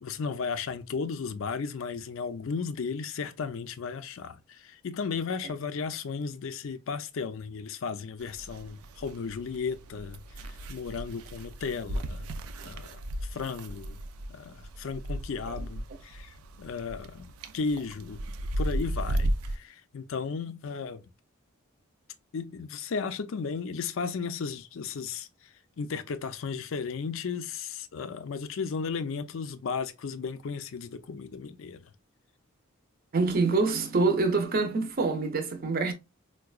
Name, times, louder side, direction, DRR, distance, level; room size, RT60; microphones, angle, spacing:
voice 1, 0.0-12.3 12.6-14.0 14.3-18.2 18.6-21.0 22.3-25.5 25.8-31.9, left 5 dB, 65° left, 0.4 m, -35 dB
sound 1, 8.2-19.6, right 1 dB, 90° right, 0.4 m, -35 dB
voice 2, 33.1-35.9, right 3 dB, 45° right, 0.6 m, -26 dB
4.6 x 2.2 x 2.3 m
head